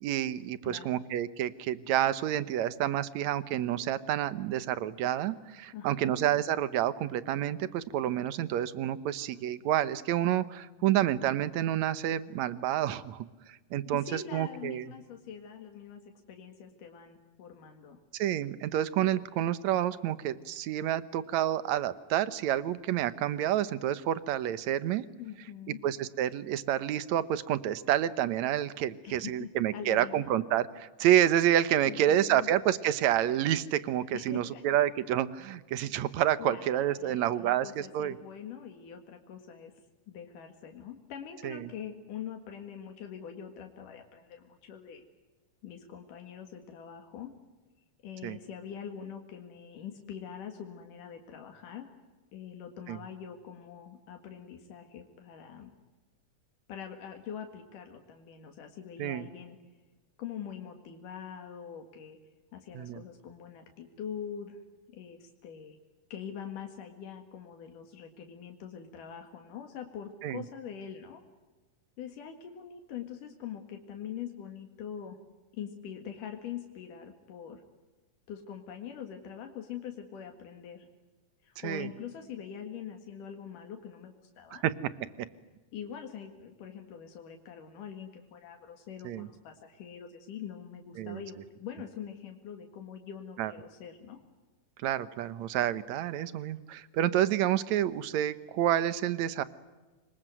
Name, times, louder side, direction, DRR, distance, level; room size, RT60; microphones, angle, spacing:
voice 1, 0.0-13.3 13.7-14.9 18.1-25.0 25.8-38.2 41.4-41.7 48.2-48.4 52.9-53.0 59.0-59.3 62.7-63.0 70.2-70.4 81.6-81.9 84.6-84.7 85.2-85.3 89.0-89.3 91.0-91.2 93.4-93.5 94.8-99.4, right 11 dB, 70° right, 15 dB, 2.2 m, -29 dB
voice 2, 0.6-1.0 5.7-6.1 14.0-16.0 16.3-18.0 25.2-25.8 29.0-30.2 31.9-32.5 34.1-34.6 36.4-39.7 40.1-45.1 45.6-47.4 48.0-52.0 52.3-55.7 56.7-59.6 60.2-62.2 62.5-64.6 64.9-65.8 66.1-71.2 72.0-75.2 75.5-77.6 78.3-80.9 81.4-84.6 85.7-94.2, left 8 dB, 90° left, 4 dB, 3.5 m, -43 dB
26.5 x 22.5 x 9.2 m, 1.2 s
omnidirectional pair, 3.6 m